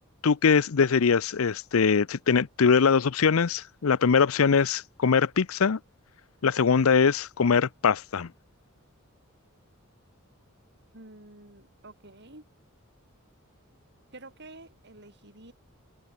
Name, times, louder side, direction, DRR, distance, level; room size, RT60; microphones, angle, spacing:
voice 1, 0.2-5.8 6.4-8.3, left 5 dB, 75° left, 0.6 m, -22 dB
voice 2, 10.9-12.4 14.1-15.5, right 2 dB, 55° right, 6.9 m, -49 dB
head